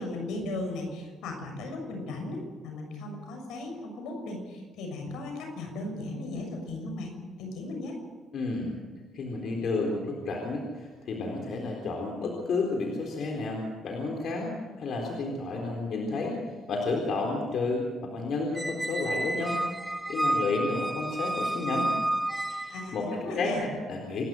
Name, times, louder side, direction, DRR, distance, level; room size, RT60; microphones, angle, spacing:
voice 1, 0.0-7.1 7.4-8.0 22.7-23.7, left 2 dB, 85° left, 3 dB, 6.7 m, -36 dB
voice 2, 8.3-8.7 9.1-14.5 14.8-16.4 16.7-19.6 20.1-21.9 22.5-23.1 23.3-24.2, left 3 dB, 65° left, 0 dB, 4.1 m, -31 dB
Squeak, 18.6-23.0, right 1 dB, 5° right, 0.8 m, -31 dB
28.0 x 12.5 x 7.9 m, 1.4 s
cardioid pair, 90°, 0 cm